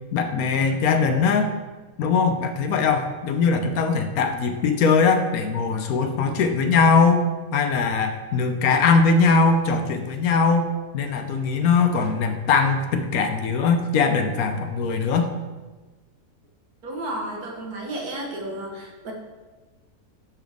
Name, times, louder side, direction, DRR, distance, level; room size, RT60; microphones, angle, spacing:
voice 1, 0.1-1.5 2.0-7.2 7.5-15.3, left 4 dB, 75° left, 7 dB, 1.1 m, -21 dB
voice 2, 16.8-19.1, right 1 dB, 75° right, -1 dB, 1.7 m, -32 dB
11.0 x 3.9 x 3.5 m, 1.3 s
omnidirectional pair, 1.6 m